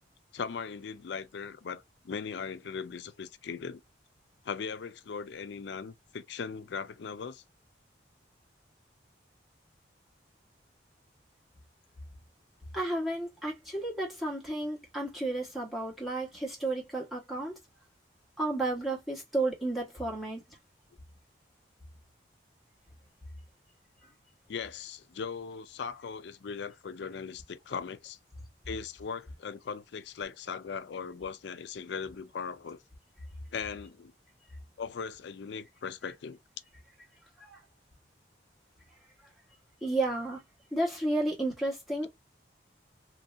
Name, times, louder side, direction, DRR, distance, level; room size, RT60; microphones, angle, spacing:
voice 1, 0.3-3.8 4.4-7.4 24.5-28.2 28.7-32.8 33.5-34.1 34.8-36.4, left 6 dB, 70° left, 0.4 m, -39 dB
voice 2, 12.7-17.6 18.4-20.6 24.0-24.1 37.4-37.6 39.8-40.4 40.7-42.1, right 2 dB, ahead, 1.1 m, -32 dB
3.1 x 2.7 x 2.5 m
head